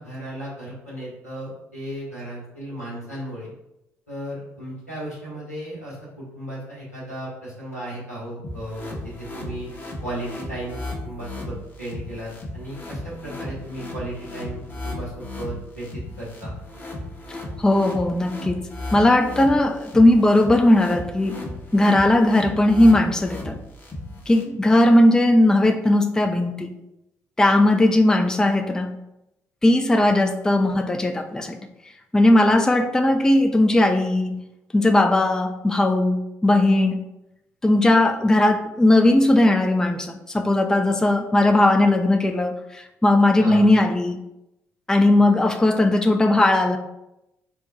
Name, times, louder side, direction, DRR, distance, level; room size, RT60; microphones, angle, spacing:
voice 1, 0.0-3.5 4.1-9.7 10.0-16.5 43.4-43.7, right 1 dB, 90° left, -8 dB, 0.9 m, -35 dB
sound 1, 8.4-24.4, left 1 dB, 25° left, 0.8 m, -35 dB
voice 2, 17.3-18.6 18.9-21.4 21.7-23.6 24.3-26.7 27.4-29.0 29.6-31.6 32.1-34.4 34.7-37.0 37.6-44.2 44.9-46.8, left 1 dB, 10° left, 6 dB, 0.3 m, -18 dB
4.3 x 2.1 x 2.7 m, 0.88 s
figure-of-eight pair, 45°, 8 cm